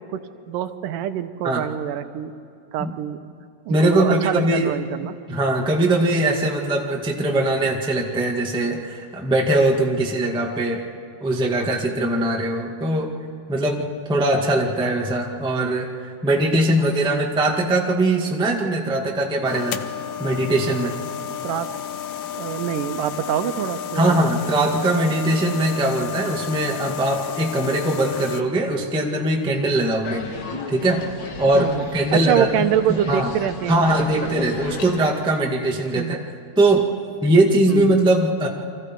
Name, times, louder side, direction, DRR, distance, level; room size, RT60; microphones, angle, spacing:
voice 1, 0.5-2.3 2.7-3.2 3.7-5.2 21.4-21.7 22.3-24.2 31.5-31.9 32.1-34.3 36.0-36.2 37.7-38.0, right 10 dB, 85° right, 9 dB, 2.5 m, -25 dB
voice 2, 3.7-4.7 5.3-10.8 11.2-13.1 13.5-19.8 20.2-20.9 23.9-30.3 30.7-31.1 31.4-33.3 33.7-36.2 36.6-36.9 37.2-38.5, right 1 dB, 5° right, 0 dB, 0.8 m, -21 dB
sound 1, 19.4-28.4, left 10 dB, 85° left, 2.5 m, -32 dB
sound 2, 30.0-35.0, left 4 dB, 65° left, 0.9 m, -34 dB
30.0 x 24.5 x 4.6 m, 2.5 s
omnidirectional pair, 3.8 m